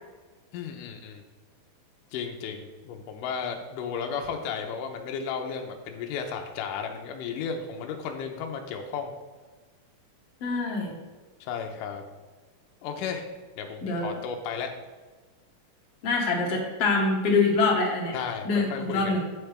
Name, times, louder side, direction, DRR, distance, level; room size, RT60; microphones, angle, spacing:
voice 1, 0.5-1.2 2.1-9.2 11.4-12.0 12.8-13.3 13.6-14.7 18.1-19.2, left 6 dB, 75° left, 3 dB, 2.3 m, -34 dB
voice 2, 10.4-11.0 13.8-14.1 16.0-18.1 18.4-19.2, left 3 dB, 50° left, -1 dB, 2.2 m, -25 dB
8.8 x 8.3 x 3.5 m, 1.3 s
omnidirectional pair, 4.2 m